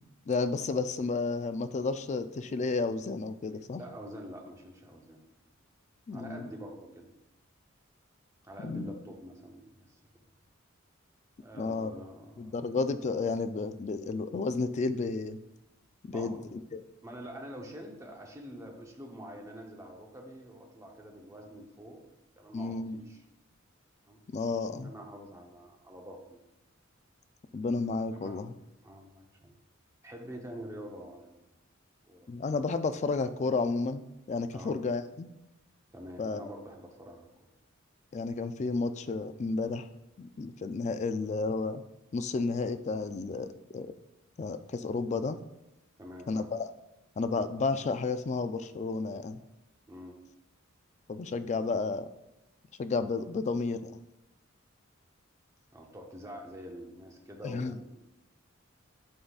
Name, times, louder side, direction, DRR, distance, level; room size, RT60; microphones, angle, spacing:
voice 1, 0.3-3.8 6.1-6.5 8.6-8.9 11.5-11.9 12.4-15.4 16.1-16.8 22.5-23.0 24.3-24.9 27.5-28.5 32.3-35.3 36.2-36.4 38.1-39.9 40.2-41.8 42.1-43.9 44.4-45.4 46.3-46.7 47.2-49.4 51.1-52.1 52.8-53.9 57.4-57.8, left 3 dB, 35° left, 10 dB, 0.3 m, -32 dB
voice 2, 3.8-5.3 6.1-7.1 8.4-10.0 11.4-12.6 16.1-16.5 17.0-22.0 22.4-23.2 24.1-24.2 24.8-26.4 28.1-28.4 28.8-29.5 30.0-31.5 32.1-32.3 34.5-34.7 35.9-37.3 46.0-46.5 49.9-50.2 55.7-58.0, equal, 15° right, 1 dB, 0.8 m, -46 dB
11.0 x 3.9 x 2.4 m, 0.92 s
head